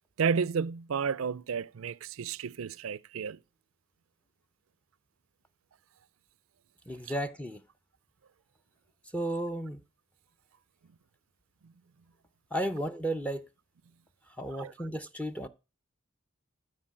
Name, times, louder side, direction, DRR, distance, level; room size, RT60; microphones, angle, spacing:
voice 1, 0.2-3.4 14.6-14.7, right 6 dB, 85° right, 0.5 m, -31 dB
voice 2, 6.9-7.6 9.1-9.8 12.5-13.5 14.4-15.5, right 1 dB, 5° left, 0.6 m, -33 dB
13.0 x 4.9 x 7.6 m
head